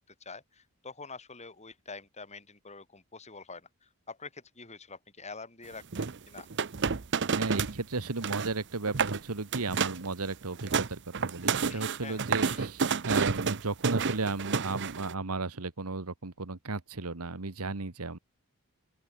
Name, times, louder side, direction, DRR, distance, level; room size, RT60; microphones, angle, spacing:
voice 1, 0.2-6.5 11.7-12.7, left 4 dB, 30° left, 5.0 m, -46 dB
sound 1, 5.9-7.8 8.1-8.5 8.9-9.2 9.5-10.1 10.4-15.1, right 5 dB, 55° right, 0.8 m, -30 dB
voice 2, 7.2-18.2, right 3 dB, 80° right, 1.5 m, -34 dB
open air
head